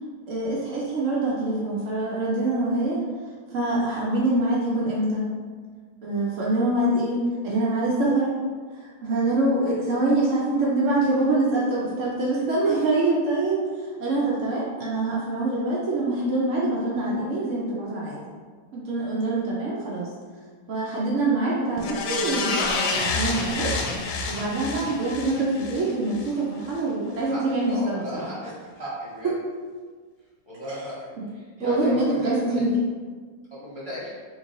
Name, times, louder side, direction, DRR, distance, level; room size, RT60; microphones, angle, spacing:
voice 1, 0.3-3.0 3.5-5.3 6.0-8.3 8.8-18.2 18.7-20.1 20.7-23.7 24.3-28.3 31.6-32.7, right 2 dB, 90° right, -5 dB, 0.6 m, -25 dB
sound 1, 21.8-26.3 26.7-26.8, left 4 dB, 75° left, 1.2 m, -28 dB
voice 2, 27.7-29.3 30.5-32.6 33.5-34.1, equal, 50° left, -11 dB, 0.3 m, -36 dB
3.1 x 3.0 x 3.7 m, 1.6 s
omnidirectional pair, 2.1 m